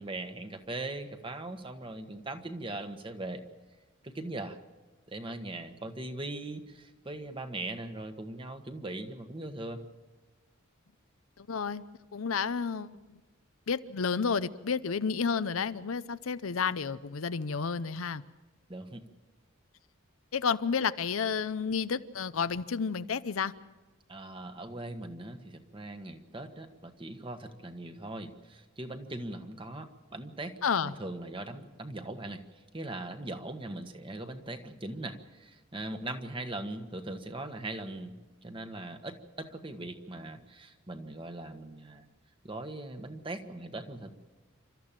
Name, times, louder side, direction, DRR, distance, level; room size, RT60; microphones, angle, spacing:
voice 1, 0.0-3.4 4.0-4.6 5.1-9.8 18.7-19.0 24.1-30.5 30.8-38.2 38.4-42.1 42.4-44.1, right 2 dB, 25° right, 1.4 m, -40 dB
voice 2, 11.4-11.8 12.1-12.9 13.7-18.2 20.3-23.5 30.6-30.9, left 6 dB, 85° left, 0.7 m, -31 dB
29.0 x 13.5 x 7.5 m
head